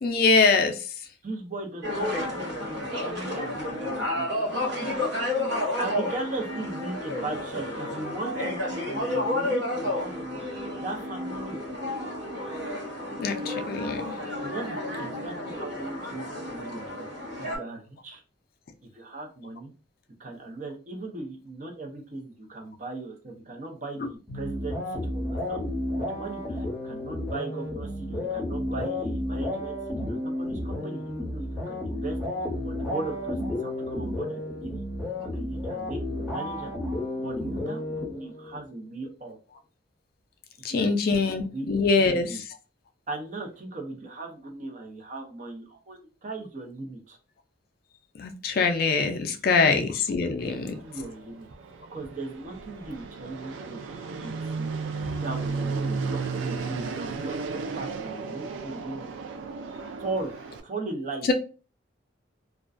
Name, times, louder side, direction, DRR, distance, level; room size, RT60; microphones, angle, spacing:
voice 1, 0.0-0.9 13.2-14.1 40.6-42.4 48.2-50.7, left 4 dB, 50° left, 6 dB, 0.3 m, -24 dB
voice 2, 1.2-10.4 10.8-11.6 14.4-17.1 17.4-18.2 18.9-19.7 20.2-25.6 26.0-32.2 32.6-34.8 35.3-36.7 37.1-39.4 40.7-41.7 42.0-42.4 43.1-47.2 49.6-49.9 50.2-51.5 51.9-54.7 55.2-59.1 60.0-60.3 60.6-61.3, right 2 dB, 40° right, 2 dB, 0.6 m, -38 dB
sound 1, 1.8-17.6, left 1 dB, 60° right, 0.9 m, -31 dB
sound 2, 24.3-38.6, left 1 dB, ahead, 1.0 m, -32 dB
Fixed-wing aircraft airplane, 50.4-60.6, right 4 dB, 90° right, 0.4 m, -34 dB
2.3 x 2.2 x 2.4 m, 0.34 s
head